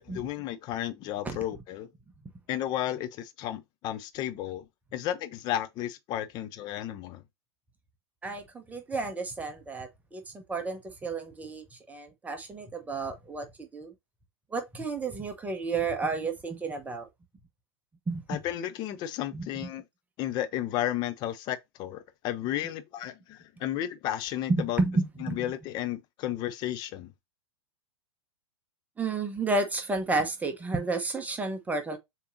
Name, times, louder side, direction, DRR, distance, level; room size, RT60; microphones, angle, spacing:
voice 1, 0.0-1.9 2.5-4.7 4.9-7.2 18.3-19.8 20.2-24.8 25.2-27.1, left 12 dB, 30° left, 0.6 m, -33 dB
voice 2, 8.2-13.9 14.5-17.1 18.1-18.4 19.3-19.5 24.5-25.5 29.0-32.0, right 3 dB, 10° right, 0.9 m, -31 dB
6.8 x 3.0 x 2.6 m
figure-of-eight pair, 100°, 15 cm